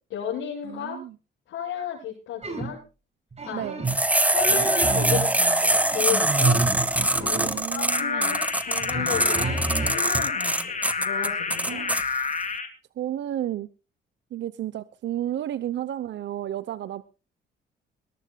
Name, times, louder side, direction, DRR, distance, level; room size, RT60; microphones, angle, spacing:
voice 1, 0.1-1.0 1.5-2.8 3.5-3.6 4.3-6.6 7.2-11.8, left 8 dB, 85° left, -6 dB, 7.2 m, -33 dB
voice 2, 0.6-1.1 3.5-3.8 7.3-8.4 11.7-12.0 13.0-13.7 14.3-17.2, right 12 dB, 65° right, 15 dB, 0.7 m, -32 dB
sound 1, 2.4-2.8 3.3-4.1 4.4-5.4 5.8-7.6 8.8-10.2, right 4 dB, 35° right, 5.3 m, -29 dB
sound 2, 3.9-12.0, right 1 dB, 5° right, 0.9 m, -23 dB
sound 3, 7.9-12.7, left 5 dB, 40° left, 3.0 m, -29 dB
21.5 x 18.5 x 2.3 m, 0.32 s
cardioid pair, 90°, 20 cm